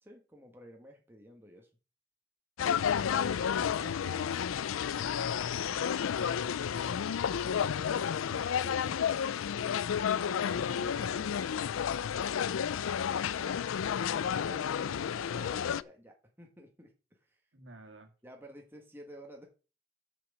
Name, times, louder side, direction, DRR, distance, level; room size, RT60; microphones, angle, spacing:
voice 1, 0.0-1.7 12.8-13.6 14.0-17.4 18.2-19.5, equal, 10° right, 1 dB, 1.5 m, -52 dB
sound 1, 2.6-15.8, left 8 dB, 85° left, 0.4 m, -31 dB
voice 2, 3.2-4.4 4.8-6.4 7.4-9.0 9.5-11.9 17.5-18.1, right 2 dB, 70° right, 5 dB, 2.1 m, -51 dB
7.2 x 6.0 x 7.3 m, 0.35 s
head